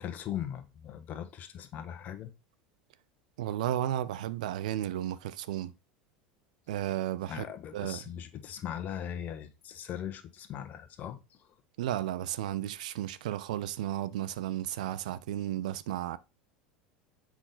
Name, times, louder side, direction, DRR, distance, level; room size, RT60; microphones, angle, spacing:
voice 1, 0.0-2.3 7.3-11.5, left 10 dB, 40° left, 1.3 m, -39 dB
voice 2, 3.4-5.7 6.7-7.4 7.7-8.0 11.8-16.2, right 12 dB, 65° right, 0.6 m, -33 dB
7.7 x 5.9 x 4.0 m
figure-of-eight pair, 75°, 4 cm